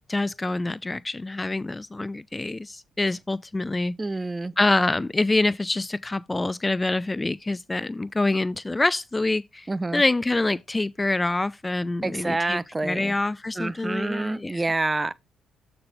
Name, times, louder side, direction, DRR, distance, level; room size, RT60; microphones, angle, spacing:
voice 1, 0.1-4.0 4.6-9.7 9.9-14.6, left 2 dB, 20° left, 0.4 m, -26 dB
voice 2, 4.0-4.5 9.7-10.0 12.0-13.2 13.6-15.1, right 2 dB, 20° right, 0.8 m, -27 dB
7.9 x 6.0 x 3.4 m
cardioid pair, 75°, 0 cm